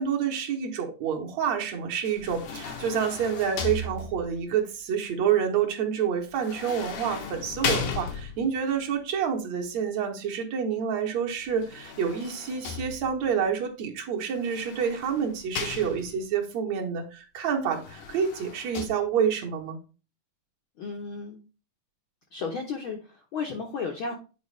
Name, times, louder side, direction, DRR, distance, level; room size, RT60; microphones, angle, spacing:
voice 1, 0.0-19.8, right 7 dB, 65° right, 2 dB, 2.2 m, -28 dB
sound 1, 2.0-4.5 6.4-8.6 11.5-13.3 14.3-16.3 17.7-18.9, left 5 dB, 90° left, 2.9 m, -36 dB
voice 2, 20.8-21.4 22.3-24.1, left 4 dB, 70° left, 2 dB, 1.2 m, -33 dB
9.1 x 4.6 x 3.3 m, 0.32 s
omnidirectional pair, 3.6 m